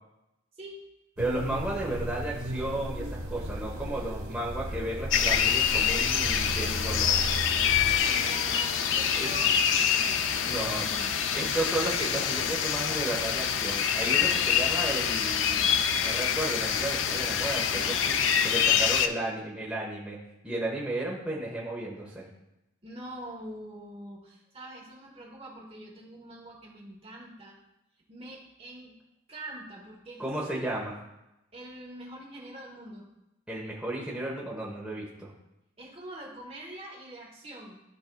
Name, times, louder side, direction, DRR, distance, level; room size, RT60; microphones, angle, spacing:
voice 1, 0.5-0.9 7.7-11.3 22.8-27.6 28.1-28.9 29.3-30.7 31.5-33.1 35.8-37.8, right 1 dB, 30° right, -1 dB, 1.2 m, -44 dB
voice 2, 1.2-7.2 9.2-9.3 10.4-10.9 11.3-15.7 16.0-18.2 18.4-20.2 20.4-22.2 30.2-31.0 33.5-35.3, right 1 dB, 5° right, -5 dB, 1.1 m, -33 dB
sound 1, 1.2-8.0, equal, 85° right, 1.1 m, -35 dB
sound 2, 5.1-19.1, left 8 dB, 60° left, 0.4 m, -26 dB
13.5 x 4.7 x 2.3 m, 0.91 s
head